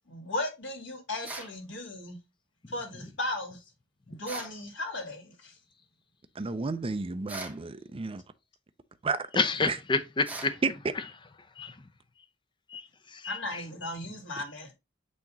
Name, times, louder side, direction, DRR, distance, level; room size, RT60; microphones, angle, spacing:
voice 1, 0.1-2.2 2.7-3.6 4.1-5.5 13.3-14.7, left 1 dB, 70° left, 2.4 m, -36 dB
sound 1, 1.2-1.6 4.3-4.6 7.3-7.6 10.3-10.6, right 2 dB, 10° right, 1.1 m, -40 dB
voice 2, 6.4-8.2 9.0-9.2 9.7-9.8 10.6-10.7 14.4-14.5, right 3 dB, 30° right, 0.5 m, -31 dB
voice 3, 9.4-10.6 11.6-11.7 12.7-12.8 13.2-13.6, left 4 dB, 25° left, 0.6 m, -28 dB
8.5 x 2.9 x 3.8 m
head